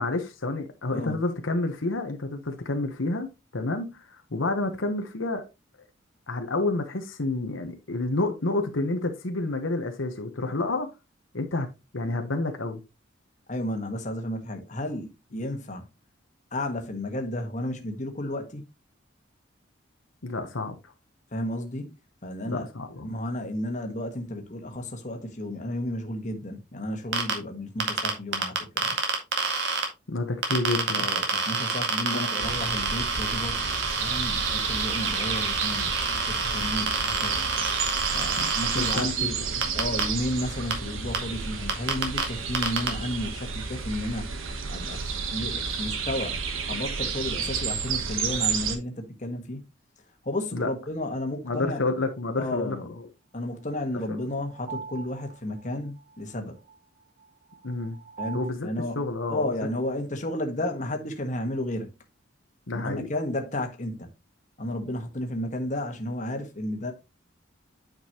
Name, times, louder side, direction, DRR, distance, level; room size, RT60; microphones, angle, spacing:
voice 1, 0.0-5.4 6.3-10.9 11.3-12.8 15.3-15.4 20.2-20.9 22.5-23.1 30.1-31.1 32.1-32.5 38.4-39.7 50.5-50.7 51.4-53.1 54.1-54.2 57.6-58.0 58.3-58.7 58.9-59.4 62.7-63.1, left 2 dB, 75° left, 1.1 m, -29 dB
voice 2, 13.5-15.8 16.5-18.6 21.3-21.9 22.2-22.7 23.0-29.0 30.9-33.6 34.0-35.9 36.3-37.4 38.1-39.4 39.7-44.3 44.7-46.4 46.7-49.6 50.2-51.8 52.4-52.9 53.3-56.6 58.2-59.0 59.3-61.9 62.8-64.1 64.6-66.9, left 1 dB, 40° left, 1.4 m, -32 dB
sound 1, 27.1-27.3 27.8-29.8 30.4-39.0 39.6-40.0 40.7-40.8 41.1-41.2 41.7-42.2 42.5-42.9, right 5 dB, 60° right, 2.1 m, -27 dB
sound 2, 32.4-48.8, right 5 dB, 90° right, 1.3 m, -31 dB
sound 3, 51.7-51.8 53.7-58.5, right 5 dB, 30° right, 2.6 m, -43 dB
9.1 x 5.3 x 3.0 m
head